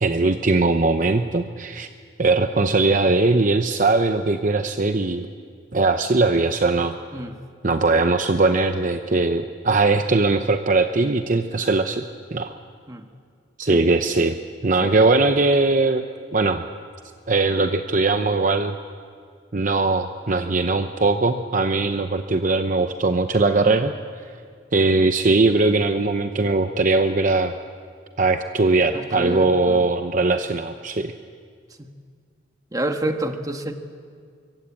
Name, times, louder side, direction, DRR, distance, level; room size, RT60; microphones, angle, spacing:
voice 1, 0.0-1.9 2.2-5.3 5.7-6.9 7.6-12.0 12.3-12.5 13.6-14.4 14.6-16.0 16.3-16.6 17.3-18.8 19.5-23.9 24.7-27.5 28.2-31.1, right 3 dB, 45° right, 7 dB, 0.8 m, -20 dB
voice 2, 28.9-29.8 31.8-31.9 32.7-33.7, right 1 dB, 20° right, 5 dB, 1.5 m, -28 dB
24.0 x 23.5 x 8.6 m, 2.1 s
head